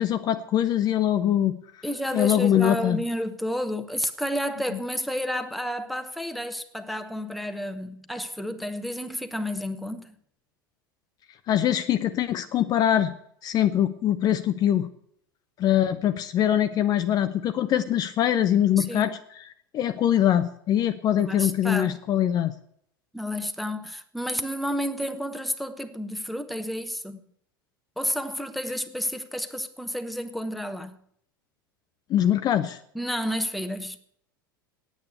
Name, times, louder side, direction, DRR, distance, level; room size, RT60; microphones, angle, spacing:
voice 1, 0.0-1.6 2.1-3.0 11.5-13.1 13.4-14.9 15.6-19.2 19.7-22.5 32.1-32.8, left 11 dB, 35° left, 0.6 m, -23 dB
voice 2, 1.8-10.1 18.8-19.1 21.1-22.0 23.1-27.2 28.0-31.0 32.9-34.0, equal, ahead, 0.9 m, -31 dB
9.2 x 8.7 x 8.3 m
figure-of-eight pair, 80°, 12 cm